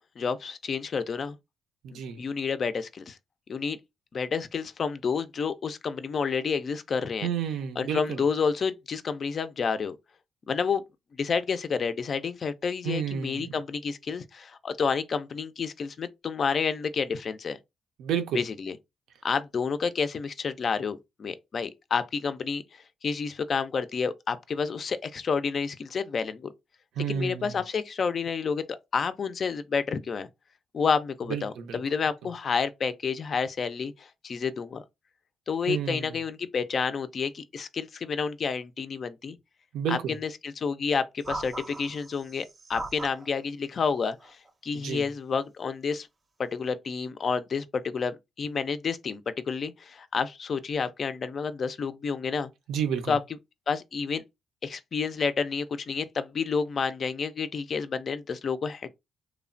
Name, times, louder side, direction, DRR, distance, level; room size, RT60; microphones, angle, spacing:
voice 1, 0.2-1.4 1.9-3.2 3.5-3.8 4.1-7.3 7.8-10.0 10.5-10.8 11.1-17.6 18.3-18.8 19.2-22.6 23.0-26.5 27.1-30.3 30.7-34.8 35.5-39.4 39.9-44.4 44.6-46.1 46.4-52.5 53.1-53.2 53.7-54.2 54.6-58.9, left 5 dB, 45° left, 0.3 m, -29 dB
voice 2, 1.8-2.2 7.2-8.2 12.8-13.5 18.0-18.4 27.0-27.5 31.3-31.8 35.7-36.2 39.7-40.2 44.7-45.0 52.7-53.2, right 8 dB, 80° right, 0.5 m, -31 dB
sound 1, 41.2-43.3 44.2-44.5, right 2 dB, 35° right, 0.6 m, -39 dB
3.0 x 2.1 x 2.5 m
cardioid pair, 90°, 0 cm